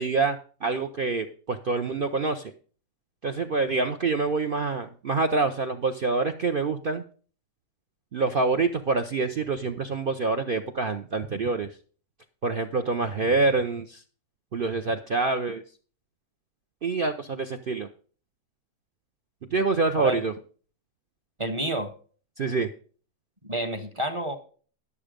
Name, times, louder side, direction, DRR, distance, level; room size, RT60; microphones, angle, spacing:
voice 1, 0.0-2.5 3.2-7.0 8.1-11.7 12.4-14.0 14.5-15.6 16.8-17.9 19.5-20.3 22.4-22.7, right 3 dB, 65° right, 7 dB, 0.5 m, -26 dB
voice 2, 21.4-21.9 23.4-24.4, right 1 dB, 25° right, 7 dB, 0.7 m, -29 dB
11.0 x 7.0 x 5.1 m, 0.42 s
omnidirectional pair, 1.7 m